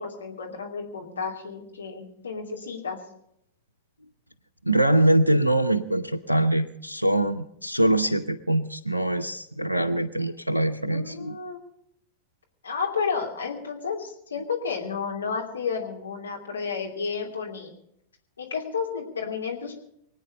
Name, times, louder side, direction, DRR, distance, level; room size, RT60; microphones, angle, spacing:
voice 1, 0.0-3.0 10.9-11.6 12.6-17.7 18.4-19.8, left 5 dB, 70° left, 0 dB, 2.8 m, -31 dB
voice 2, 4.6-11.4, right 1 dB, 90° right, 7 dB, 0.6 m, -23 dB
25.0 x 9.2 x 5.4 m, 0.73 s
figure-of-eight pair, 90°, 0 cm